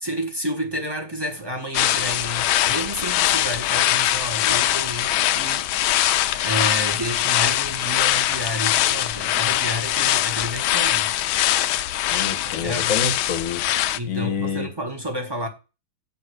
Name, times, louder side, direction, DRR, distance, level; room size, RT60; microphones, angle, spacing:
voice 1, 0.0-11.1 12.4-12.9 13.9-15.5, equal, 15° right, 1.1 m, -30 dB
sound 1, 1.7-14.0, left 13 dB, 80° left, 1.4 m, -22 dB
voice 2, 12.1-13.6 14.0-14.7, left 6 dB, 50° left, 1.2 m, -27 dB
7.1 x 5.5 x 6.3 m
omnidirectional pair, 2.3 m